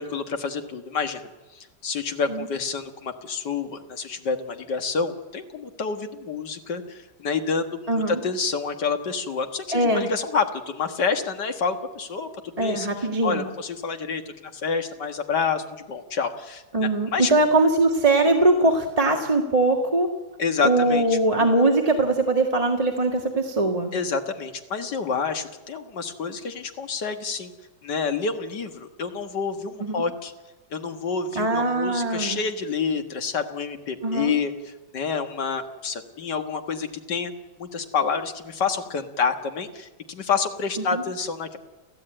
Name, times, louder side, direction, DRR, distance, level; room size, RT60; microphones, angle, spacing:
voice 1, 0.0-17.3 20.4-21.5 23.9-27.5 27.8-30.3 30.7-37.3 37.6-41.6, left 5 dB, 80° left, 7 dB, 2.3 m, -28 dB
voice 2, 7.9-8.2 9.7-10.1 12.6-13.5 16.7-20.1 20.6-23.9 29.8-30.0 31.4-32.4 34.0-34.3 40.9-41.0, right 2 dB, 20° right, 1 dB, 1.9 m, -21 dB
30.0 x 14.5 x 9.0 m, 1.2 s
omnidirectional pair, 1.8 m